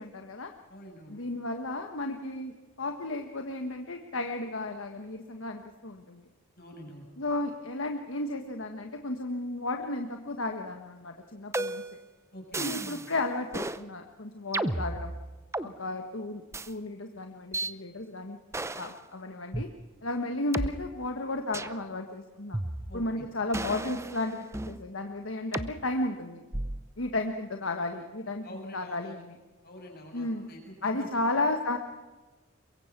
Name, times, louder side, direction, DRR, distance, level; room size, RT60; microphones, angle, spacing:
voice 1, 0.0-0.5 1.1-2.5 2.8-6.3 7.2-11.8 12.6-15.1 15.6-18.4 18.8-19.7 20.0-22.6 22.9-26.4 27.0-29.4 30.1-30.5 30.8-31.8, left 2 dB, 75° left, 4 dB, 1.4 m, -33 dB
voice 2, 0.7-1.2 6.6-7.1 12.3-12.7 22.9-23.2 28.4-29.1 29.6-31.1, equal, 50° left, 2 dB, 7.0 m, -46 dB
sound 1, 11.5-12.0 12.5-13.1 13.5-13.8 14.5-15.7 16.5-16.7 17.5-17.7 18.5-19.0 19.5-19.6 20.5-20.7 21.5-21.8 22.5-23.1 23.5-24.8 25.5-25.7 26.5-26.9, right 2 dB, 15° right, 0.7 m, -33 dB
23.5 x 23.0 x 6.0 m, 1.2 s
head